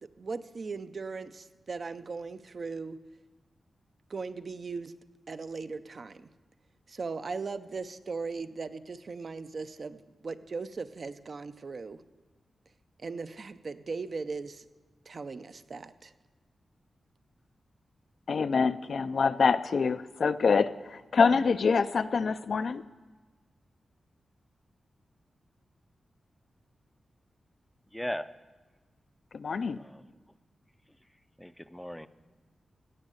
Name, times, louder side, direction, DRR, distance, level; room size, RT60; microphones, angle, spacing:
voice 1, 0.0-3.0 4.1-4.9 5.3-6.3 6.9-12.0 13.0-14.6 15.1-16.1, right 4 dB, 45° right, 11 dB, 0.5 m, -38 dB
voice 2, 18.3-22.8 29.3-29.8, left 5 dB, 60° left, 12 dB, 0.4 m, -26 dB
voice 3, 27.9-28.3 29.7-30.2 31.4-32.1, equal, 5° left, 12 dB, 0.4 m, -38 dB
16.5 x 6.5 x 7.8 m, 1.3 s
wide cardioid pair, 125°, 0 cm